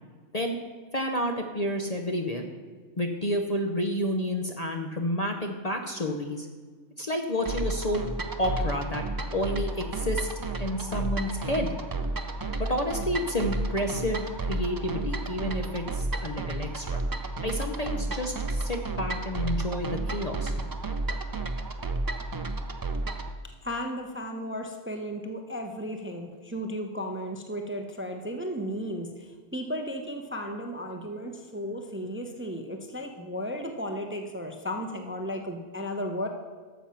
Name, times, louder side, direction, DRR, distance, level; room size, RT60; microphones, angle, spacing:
voice 1, 0.9-2.5 3.0-6.5 7.0-8.0 8.4-9.0 9.3-10.3 10.6-11.8 12.6-17.0 17.4-20.5, left 1 dB, 35° left, 3 dB, 0.8 m, -30 dB
sound 1, 7.4-23.3, right 2 dB, 30° right, 0.4 m, -32 dB
voice 2, 23.6-36.3, equal, 10° right, 4 dB, 0.7 m, -34 dB
12.0 x 7.2 x 5.8 m, 1.5 s
omnidirectional pair, 1.3 m